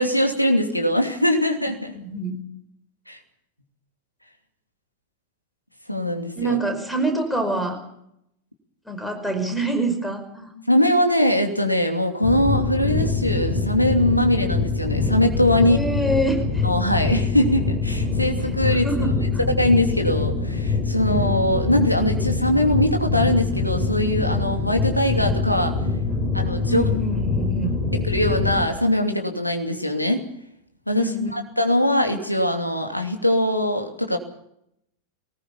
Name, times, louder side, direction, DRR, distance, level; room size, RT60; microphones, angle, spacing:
voice 1, 0.0-2.0 3.1-3.2 5.9-6.6 10.7-15.8 16.6-19.1 19.5-25.8 26.3-26.8 27.9-30.3 30.9-34.2, left 1 dB, 90° left, 4 dB, 2.8 m, -21 dB
voice 2, 1.9-2.4 6.4-7.8 8.9-10.5 15.7-16.7 18.8-19.1 26.7-27.7 30.9-31.3, right 2 dB, 5° left, 6 dB, 5.2 m, -25 dB
sound 1, 12.2-28.6, left 3 dB, 30° left, 7.6 m, -24 dB
22.5 x 19.0 x 7.2 m, 0.76 s
figure-of-eight pair, 90°, 0 cm